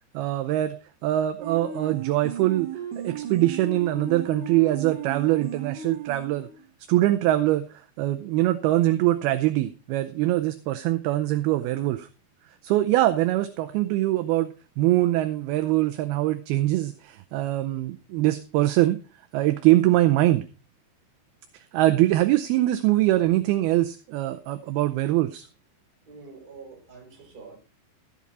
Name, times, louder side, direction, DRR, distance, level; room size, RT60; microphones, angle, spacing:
voice 1, 0.1-0.8 1.0-2.7 3.0-6.5 6.9-7.6 8.0-12.1 12.6-19.0 19.3-20.5 21.5-25.5, right 15 dB, 80° right, 8 dB, 2.3 m, -23 dB
sound 1, 1.4-6.7, right 7 dB, 55° right, 3.0 m, -35 dB
voice 2, 26.1-27.6, right 4 dB, 20° right, 0 dB, 4.2 m, -45 dB
13.5 x 8.5 x 4.1 m, 0.33 s
omnidirectional pair, 5.0 m